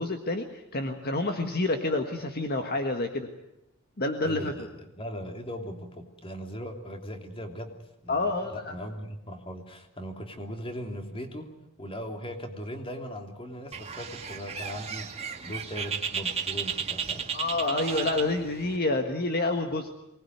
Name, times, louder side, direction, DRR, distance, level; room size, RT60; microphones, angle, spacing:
voice 1, 0.0-3.3 4.0-4.6 8.1-8.7 17.3-19.9, left 2 dB, 45° left, 5 dB, 1.7 m, -28 dB
voice 2, 4.2-7.7 8.0-11.5 11.8-17.3, equal, 25° left, 5 dB, 3.1 m, -39 dB
Bird, 13.7-18.8, right 6 dB, 30° right, 2.2 m, -34 dB
24.0 x 20.0 x 9.5 m, 0.87 s
head